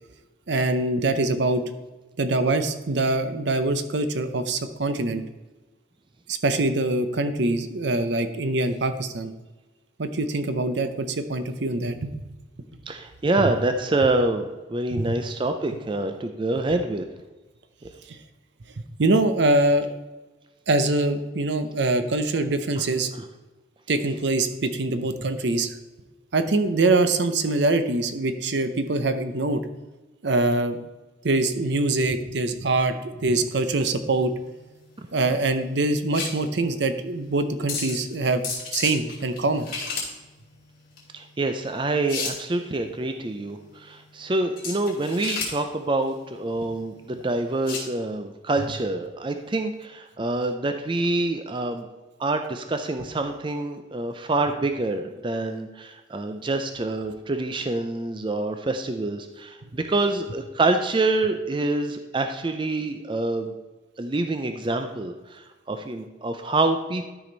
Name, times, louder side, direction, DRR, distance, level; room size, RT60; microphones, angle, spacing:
voice 1, 0.5-1.6 2.2-5.2 6.3-9.3 10.0-12.2 14.9-15.0 18.1-18.2 19.0-19.9 20.7-23.1 23.9-25.8 26.3-29.6 30.2-30.8 31.2-34.3 35.1-38.4 38.7-39.7, right 2 dB, 65° right, 9 dB, 0.7 m, -24 dB
voice 2, 12.9-17.0 41.1-51.9 52.2-63.5 64.0-67.1, right 2 dB, 25° right, 7 dB, 0.5 m, -26 dB
sound 1, 33.2-47.9, left 4 dB, 50° left, 2.5 m, -35 dB
12.5 x 5.0 x 4.0 m, 1.2 s
head